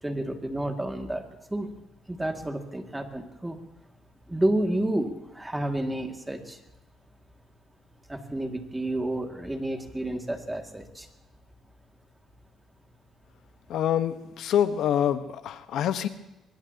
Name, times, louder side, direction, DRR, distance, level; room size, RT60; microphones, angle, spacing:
voice 1, 0.0-1.7 2.1-3.6 4.3-6.6 8.1-11.1, right 1 dB, 10° right, 4 dB, 2.2 m, -30 dB
voice 2, 13.7-16.1, left 10 dB, 70° left, 10 dB, 1.2 m, -26 dB
24.0 x 21.0 x 2.9 m, 0.96 s
cardioid pair, 110°, 0 cm